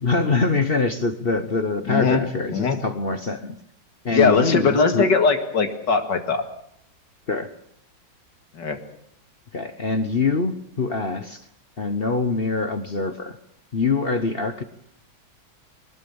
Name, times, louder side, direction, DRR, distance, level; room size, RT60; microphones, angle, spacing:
voice 1, 0.0-3.5 4.0-5.1 7.3-7.5 9.5-11.5 11.8-13.4 13.7-14.6, left 3 dB, 40° left, 9 dB, 1.0 m, -24 dB
voice 2, 1.9-2.2 2.5-2.8 4.1-6.4 8.5-8.8, left 4 dB, 75° left, 6 dB, 2.6 m, -20 dB
21.5 x 19.5 x 7.1 m, 0.73 s
omnidirectional pair, 1.9 m